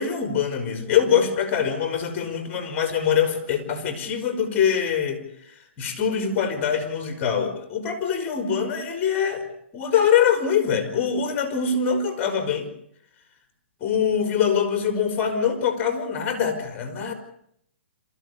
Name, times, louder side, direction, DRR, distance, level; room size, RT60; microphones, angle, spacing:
voice 1, 0.0-5.2 5.8-9.4 9.7-12.7 13.8-17.1, left 7 dB, 25° left, 7 dB, 4.7 m, -23 dB
27.0 x 15.0 x 8.4 m, 0.71 s
hypercardioid pair, 145°, 7 cm